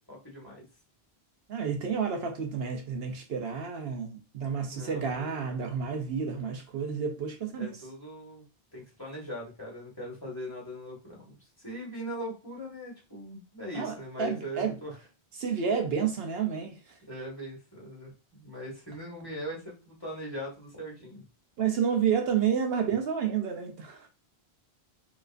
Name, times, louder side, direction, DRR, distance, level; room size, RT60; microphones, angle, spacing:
voice 1, 0.1-0.7 4.7-5.5 7.6-8.4 8.7-15.0 17.1-21.2, equal, 20° left, 1.8 m, -40 dB
voice 2, 1.5-7.8 13.7-14.8 15.4-17.0 21.6-24.1, right 7 dB, 70° right, 0.9 m, -30 dB
4.5 x 2.9 x 2.5 m
omnidirectional pair, 1.1 m